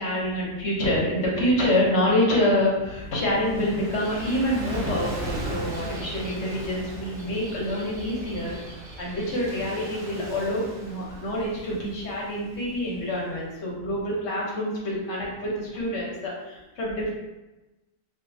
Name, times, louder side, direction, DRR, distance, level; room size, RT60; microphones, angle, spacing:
voice 1, 0.0-17.1, left 1 dB, 60° left, -4 dB, 1.2 m, -26 dB
Gull seagull / Waves surf, 2.7-13.3, right 1 dB, 30° right, 0.5 m, -38 dB
3.1 x 2.9 x 2.7 m, 1.1 s
omnidirectional pair, 1.4 m